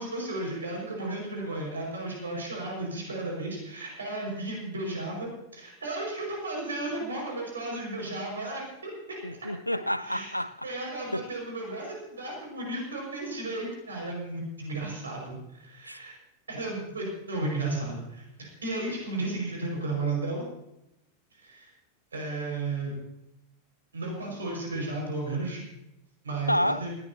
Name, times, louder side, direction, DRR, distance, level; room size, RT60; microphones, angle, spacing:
voice 1, 0.0-9.2 10.0-10.3 10.6-16.1 16.5-20.5 21.4-21.7 22.1-22.9 23.9-25.6 26.2-26.9, right 2 dB, 70° right, 5.5 m, -34 dB
voice 2, 9.2-10.7 11.1-11.3 15.9-16.0 26.5-26.9, equal, 90° left, 0.5 m, -29 dB
19.5 x 16.0 x 2.9 m
figure-of-eight pair, 90°, 0 cm